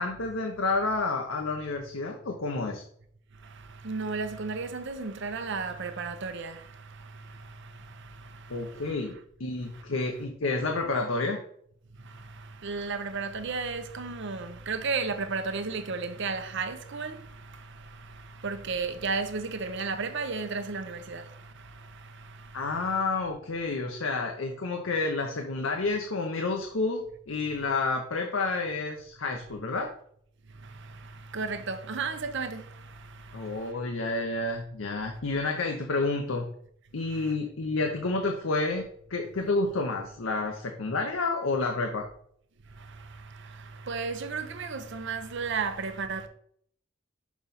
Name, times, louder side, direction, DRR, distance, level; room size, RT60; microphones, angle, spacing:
voice 1, 0.0-2.8 8.5-9.1 9.4-11.4 22.5-29.9 33.3-36.5 36.9-38.8 39.1-42.1, left 3 dB, 75° left, 0.8 m, -29 dB
voice 2, 3.4-9.1 9.6-9.8 12.0-23.0 27.6-27.7 30.6-33.7 37.0-37.4 42.7-46.3, right 4 dB, 60° right, 0.8 m, -35 dB
6.2 x 5.1 x 4.1 m
head